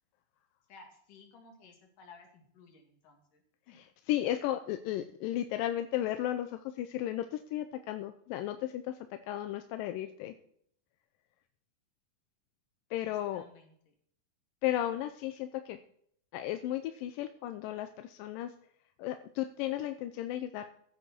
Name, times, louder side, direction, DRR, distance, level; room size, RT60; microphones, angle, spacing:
voice 1, 0.7-3.8 13.0-13.9, left 4 dB, 70° left, 2 dB, 3.8 m, -57 dB
voice 2, 4.1-10.3 12.9-13.4 14.6-15.8 16.3-18.5 19.0-20.7, left 13 dB, 85° left, 8 dB, 2.3 m, -34 dB
15.0 x 8.8 x 4.4 m, 0.65 s
omnidirectional pair, 4.0 m